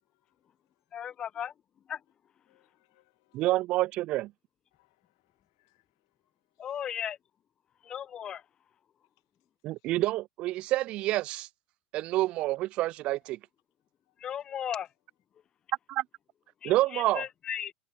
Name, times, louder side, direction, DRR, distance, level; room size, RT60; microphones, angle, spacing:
voice 1, 0.1-0.7 2.5-3.5 4.7-6.8 9.8-9.9 14.1-14.2, left 22 dB, 65° left, 2.0 m, -73 dB
voice 2, 0.9-1.5 1.9-2.0 6.6-7.2 7.8-8.4 14.2-14.9 16.6-17.7, left 9 dB, 35° left, 0.9 m, -36 dB
voice 3, 3.3-4.3 9.6-11.5 11.9-13.4 15.9-16.0 16.7-17.2, right 17 dB, 50° right, 0.3 m, -28 dB
hypercardioid pair, 80°, 2 cm